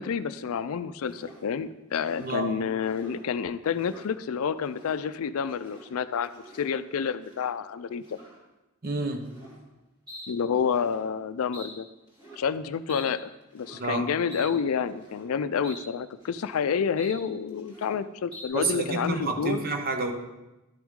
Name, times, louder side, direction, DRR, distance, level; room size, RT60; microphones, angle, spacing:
voice 1, 0.0-8.2 10.3-11.9 12.4-13.2 13.5-19.7, left 6 dB, 75° left, 13 dB, 0.4 m, -29 dB
sound 1, 1.1-1.5 1.9-2.4 2.8-3.2 3.6-4.1 4.6-5.0 5.4-5.9 6.2-6.7 7.2-7.5 8.0-8.4 9.2-9.6 10.1-10.3 10.6-11.0 11.5-11.7 12.1-12.5 12.9-13.1 13.5-13.8 14.3-14.5 14.9-15.3 15.6-15.8 16.1-16.6 17.0-17.2 17.5-18.0 18.3-18.5, equal, 20° right, 2.4 m, -47 dB
voice 2, 2.2-2.5 8.8-9.3 13.7-14.1 18.5-20.1, right 3 dB, 40° right, 5 dB, 0.8 m, -29 dB
12.0 x 6.1 x 3.6 m, 1.0 s
head